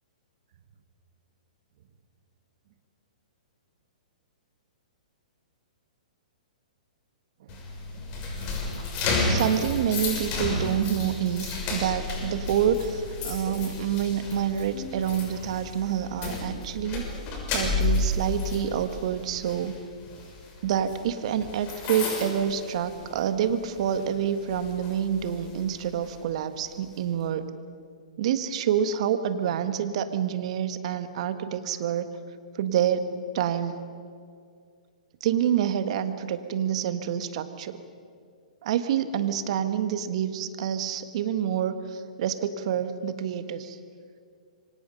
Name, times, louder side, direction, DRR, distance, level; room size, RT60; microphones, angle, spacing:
sound 1, 7.5-23.4 23.7-24.0 24.5-26.2, left 2 dB, 35° left, 6.4 m, -32 dB
voice 1, 9.3-17.1 17.5-19.7 20.6-27.5 28.2-32.1 32.5-33.8 35.2-37.8 38.6-43.8, right 9 dB, 55° right, 10 dB, 1.6 m, -27 dB
27.0 x 24.5 x 5.4 m, 2.2 s
hypercardioid pair, 120°, 4 cm